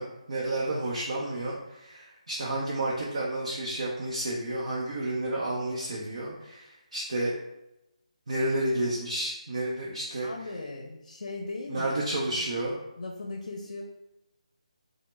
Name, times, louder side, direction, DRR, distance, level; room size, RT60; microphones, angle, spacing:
voice 1, 0.0-7.3 8.3-10.3 11.7-12.7, right 1 dB, 55° right, -5 dB, 0.6 m, -31 dB
voice 2, 10.2-12.2 13.0-13.8, left 3 dB, 85° left, -1 dB, 0.5 m, -38 dB
3.0 x 2.0 x 3.2 m, 0.88 s
hypercardioid pair, 175°, 4 cm